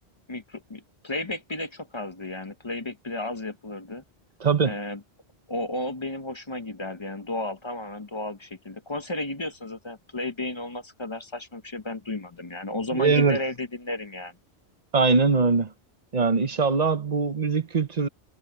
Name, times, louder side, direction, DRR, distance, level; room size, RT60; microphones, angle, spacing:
voice 1, 0.3-4.0 4.6-5.0 5.5-14.3, left 2 dB, 30° left, 0.8 m, -33 dB
voice 2, 4.4-4.8 12.9-13.4 14.9-15.7 16.1-18.1, right 4 dB, 40° right, 1.0 m, -22 dB
omnidirectional pair, 1.1 m